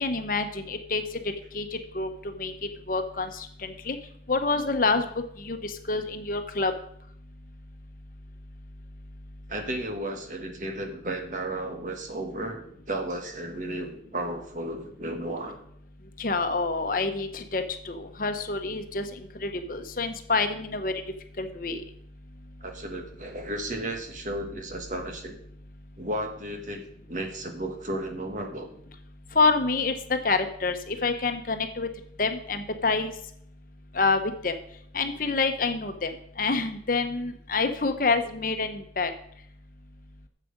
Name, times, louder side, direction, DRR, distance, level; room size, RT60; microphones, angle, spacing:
voice 1, 0.0-1.0 1.5-2.1 2.4-2.5 2.9-4.0 4.3-5.0 5.4-6.7 16.2-19.0 19.4-20.9 21.4-21.8 29.3-29.9 30.2-31.9 32.2-33.1 33.9-34.5 34.9-36.1 36.4-39.1, left 3 dB, 50° left, 7 dB, 0.9 m, -27 dB
voice 2, 9.5-15.6 22.6-25.4 26.0-26.8 27.1-28.7, right 1 dB, 45° right, 4 dB, 1.6 m, -34 dB
11.0 x 7.6 x 5.3 m, 0.69 s
head